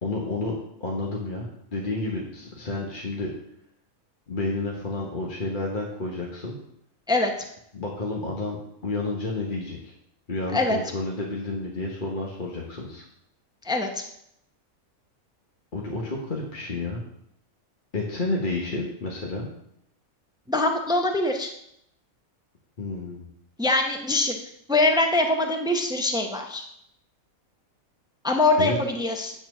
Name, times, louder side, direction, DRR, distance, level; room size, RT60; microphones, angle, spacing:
voice 1, 0.0-3.3 4.3-6.5 7.7-8.6 8.8-9.9 10.3-13.0 15.7-17.0 17.9-19.5 22.8-23.2 28.6-28.8, left 2 dB, 35° left, -2 dB, 1.3 m, -30 dB
voice 2, 13.6-14.0 20.5-21.5 23.6-24.4 24.7-26.6 28.2-29.3, left 2 dB, 5° right, 3 dB, 0.6 m, -23 dB
9.2 x 4.3 x 6.2 m, 0.73 s
omnidirectional pair, 1.5 m